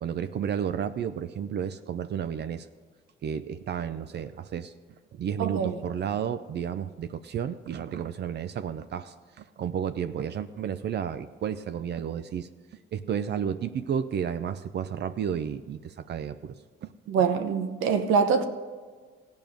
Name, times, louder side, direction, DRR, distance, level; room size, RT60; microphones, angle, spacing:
voice 1, 0.0-2.7 3.2-4.7 5.1-12.5 12.9-16.6 16.8-16.9, right 8 dB, 60° right, 0.5 m, -32 dB
voice 2, 5.4-5.8 17.1-18.5, right 6 dB, 90° right, 1.0 m, -24 dB
15.5 x 5.3 x 9.0 m
cardioid pair, 90°, 20 cm